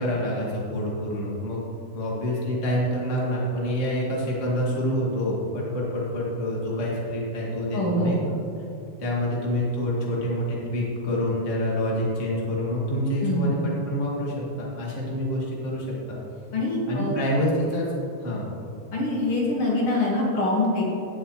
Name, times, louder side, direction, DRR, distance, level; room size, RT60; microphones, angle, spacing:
voice 1, 0.0-1.6 1.9-8.2 9.0-16.2 16.9-17.9 18.2-18.4, equal, 85° left, -4 dB, 0.6 m, -27 dB
voice 2, 7.7-8.2 13.2-13.6 16.5-17.1 18.9-20.8, left 2 dB, 50° left, -4 dB, 1.6 m, -24 dB
17.0 x 7.9 x 3.1 m, 2.9 s
omnidirectional pair, 4.8 m